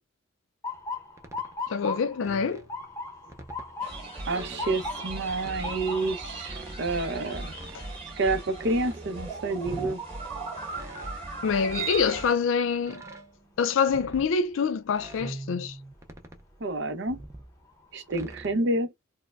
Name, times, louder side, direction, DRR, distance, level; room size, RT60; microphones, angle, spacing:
Motor vehicle (road) / Siren, 0.6-12.5 13.0-13.4 14.2-14.5 16.4-16.6 17.1-17.2 17.6-18.3, left 3 dB, 15° left, 0.7 m, -40 dB
sound 1, 0.8-0.9 1.2-1.5 2.2-3.8 4.3-5.1 5.4-6.9 7.5-8.1 8.5-10.0 10.7-11.3 11.7-12.4 12.8-13.4 13.9-14.3 14.9-16.7 17.0-17.6 18.1-18.6, right 4 dB, 15° right, 0.4 m, -42 dB
voice 1, 1.7-2.6 11.4-13.0 13.6-15.7, left 5 dB, 65° left, 0.4 m, -26 dB
sound 2, 3.8-12.3, right 3 dB, 30° right, 2.0 m, -38 dB
voice 2, 4.3-7.5 8.2-10.0 16.6-17.2 17.9-18.9, right 2 dB, 60° right, 0.7 m, -29 dB
4.4 x 2.1 x 2.3 m
head